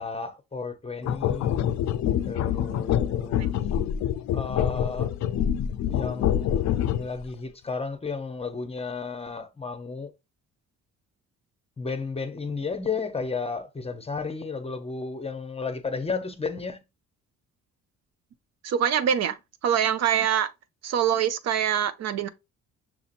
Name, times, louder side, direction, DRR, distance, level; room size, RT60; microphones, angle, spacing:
voice 1, 0.0-1.6 2.3-3.6 4.3-5.1 5.9-10.1 11.8-16.8, left 4 dB, 20° left, 0.6 m, -33 dB
sound 1, 1.0-7.2, left 10 dB, 65° left, 0.5 m, -26 dB
voice 2, 18.6-19.4 19.6-20.5 20.8-22.3, right 9 dB, 60° right, 0.5 m, -24 dB
6.0 x 2.8 x 2.5 m
cardioid pair, 90°, 30 cm